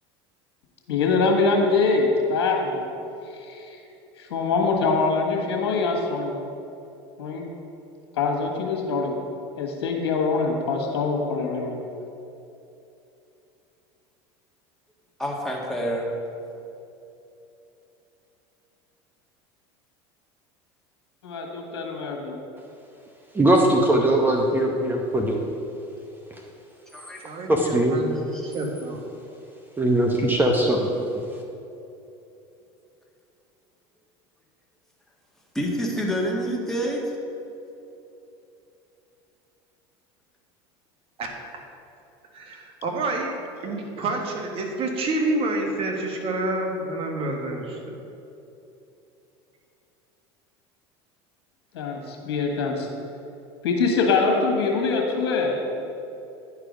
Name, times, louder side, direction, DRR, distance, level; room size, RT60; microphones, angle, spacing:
voice 1, 0.9-2.9 3.2-3.8 4.2-6.5 7.2-7.5 8.1-9.1 9.6-11.8 21.2-22.4 51.7-52.9 53.6-55.6, left 4 dB, 85° left, 1 dB, 1.5 m, -24 dB
voice 2, 15.2-16.1 26.9-27.2 28.3-28.5 35.5-37.1, equal, 5° left, -3 dB, 1.7 m, -27 dB
voice 3, 23.3-25.4 27.5-28.0 29.8-30.9, right 1 dB, 15° right, 1 dB, 0.9 m, -20 dB
voice 4, 27.2-29.0 41.2-41.3 42.3-43.4 43.6-48.0, right 2 dB, 45° right, 2 dB, 1.5 m, -28 dB
10.0 x 4.9 x 5.1 m, 2.8 s
hypercardioid pair, 90°, 13 cm